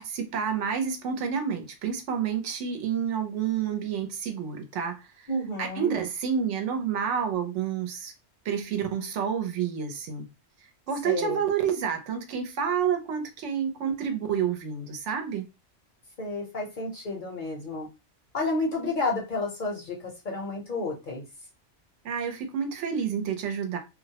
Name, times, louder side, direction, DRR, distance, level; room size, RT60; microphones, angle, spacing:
voice 1, 0.0-5.3 5.6-8.1 8.5-10.3 10.9-15.5 22.0-23.8, right 7 dB, 75° right, 0.9 m, -29 dB
voice 2, 5.3-6.0 11.0-11.4 16.2-17.9 18.3-21.3, left 2 dB, 50° left, 0.7 m, -31 dB
2.3 x 2.0 x 2.7 m
omnidirectional pair, 1.2 m